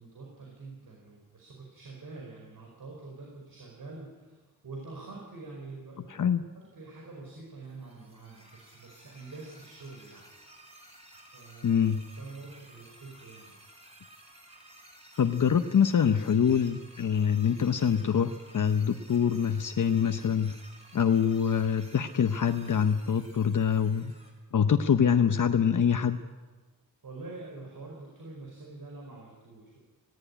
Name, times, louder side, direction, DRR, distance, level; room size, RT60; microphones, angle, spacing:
voice 1, 0.0-6.3 6.5-10.3 11.3-11.8 12.2-13.5 20.9-21.1 27.0-29.8, right 3 dB, 75° right, -1 dB, 5.0 m, -46 dB
voice 2, 6.1-6.4 11.6-12.0 15.2-20.5 20.9-24.1 24.5-26.2, left 7 dB, 65° left, 7 dB, 0.8 m, -25 dB
sound 1, 7.6-24.3, right 1 dB, 20° right, 6.6 m, -54 dB
19.0 x 17.5 x 9.9 m, 1.3 s
wide cardioid pair, 135°, 34 cm